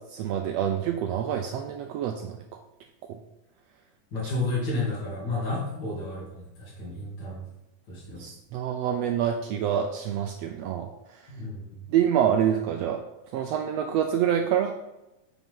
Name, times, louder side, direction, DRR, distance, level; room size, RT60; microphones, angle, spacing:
voice 1, 0.1-2.4 8.2-10.9 11.9-13.0 13.3-14.7, right 9 dB, 80° right, 4 dB, 1.5 m, -26 dB
voice 2, 4.1-7.5 7.9-8.2 11.3-11.8, left 2 dB, 35° left, -7 dB, 3.2 m, -31 dB
9.2 x 6.0 x 3.8 m, 0.97 s
omnidirectional pair, 3.5 m